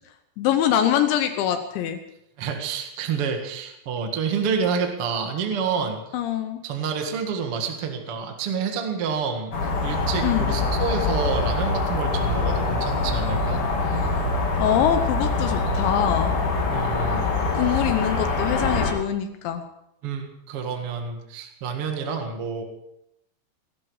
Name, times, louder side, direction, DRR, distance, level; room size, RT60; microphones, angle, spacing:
voice 1, 0.4-2.0 6.1-6.6 10.2-10.5 14.6-16.4 17.5-19.6, left 10 dB, 80° left, 8 dB, 3.2 m, -24 dB
voice 2, 2.4-6.0 6.6-9.5 9.8-14.0 16.7-17.3 17.7-17.8 20.0-22.6, right 6 dB, 50° right, 3 dB, 1.7 m, -28 dB
sound 1, 9.5-18.9, left 3 dB, 35° left, 3.0 m, -24 dB
18.5 x 16.0 x 4.8 m, 0.81 s
omnidirectional pair, 5.3 m